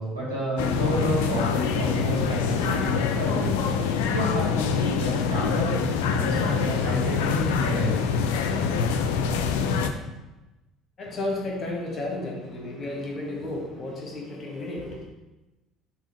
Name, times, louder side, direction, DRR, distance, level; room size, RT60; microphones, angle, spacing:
voice 1, 0.0-3.5 4.1-5.7 6.1-8.0, equal, 80° right, -7 dB, 2.0 m, -29 dB
sound 1, 0.6-9.9, left 6 dB, 65° left, 0.4 m, -25 dB
voice 2, 11.0-15.1, left 2 dB, 35° left, -1 dB, 1.6 m, -33 dB
6.0 x 2.9 x 5.5 m, 1.1 s
figure-of-eight pair, 60°, 0 cm